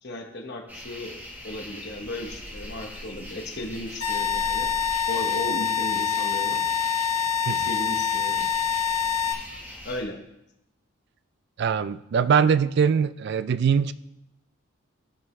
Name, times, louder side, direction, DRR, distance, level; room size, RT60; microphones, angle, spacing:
voice 1, 0.0-1.2 1.4-4.7 5.0-6.7 7.5-8.5 9.8-10.2, left 1 dB, 50° left, 2 dB, 1.1 m, -35 dB
sound 1, 0.7-10.0, left 1 dB, 10° right, 1.3 m, -41 dB
sound 2, 4.0-9.3, left 8 dB, 85° left, 1.4 m, -25 dB
voice 2, 11.6-13.9, right 6 dB, 50° right, 15 dB, 0.3 m, -22 dB
15.5 x 5.3 x 3.2 m, 0.83 s
head